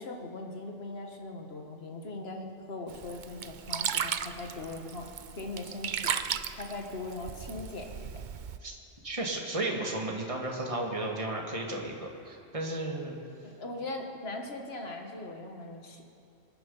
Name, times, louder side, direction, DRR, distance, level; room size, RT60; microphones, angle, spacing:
voice 1, 0.0-5.1 5.4-6.1 6.5-8.1 13.4-16.0, left 2 dB, 60° left, 2 dB, 1.8 m, -40 dB
Sink (filling or washing), 2.9-8.6, right 8 dB, 50° right, 0.6 m, -36 dB
voice 2, 9.0-13.2, right 2 dB, 30° right, 0 dB, 1.9 m, -34 dB
25.5 x 9.9 x 5.5 m, 2.6 s
omnidirectional pair, 1.2 m